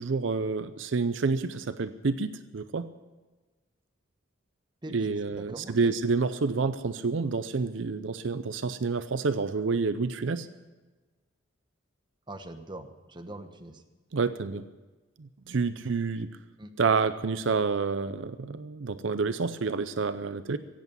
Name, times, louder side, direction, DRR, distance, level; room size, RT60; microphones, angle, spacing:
voice 1, 0.0-2.9 4.9-10.5 14.1-14.6 15.2-16.3 16.8-20.6, right 4 dB, 70° right, 12 dB, 0.6 m, -28 dB
voice 2, 4.8-5.9 12.3-13.8 16.6-16.7, right 1 dB, 25° right, 6 dB, 1.1 m, -42 dB
16.5 x 8.2 x 9.7 m, 1.2 s
head